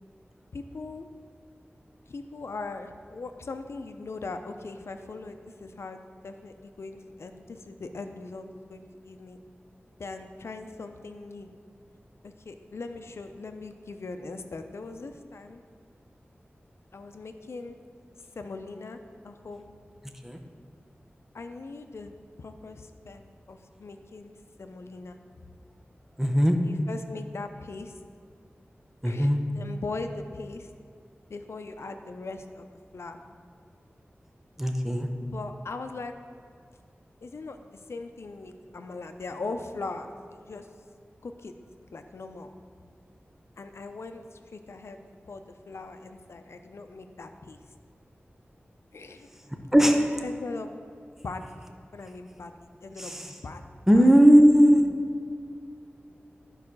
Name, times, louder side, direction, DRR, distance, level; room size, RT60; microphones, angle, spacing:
voice 1, 0.5-1.1 2.1-9.4 10.0-11.5 12.2-15.6 16.9-17.8 18.3-19.0 19.2-19.7 21.3-22.1 22.4-23.2 23.5-25.2 26.6-28.0 29.0-30.7 31.3-32.7 32.9-33.2 35.3-36.1 37.2-40.7 41.2-41.5 41.9-42.5 43.6-45.0 45.3-47.6 48.9-49.3 49.8-50.7 51.2-51.4 51.9-52.5 52.8-53.2 53.4-53.6 53.9-54.1, left 3 dB, 85° left, 7 dB, 0.6 m, -40 dB
voice 2, 26.2-26.6 29.0-29.4 34.6-35.1 49.7-50.2 53.0-53.3 53.9-54.9, equal, 10° right, 4 dB, 0.9 m, -18 dB
11.0 x 4.8 x 6.1 m, 2.3 s
wide cardioid pair, 90°, 4 cm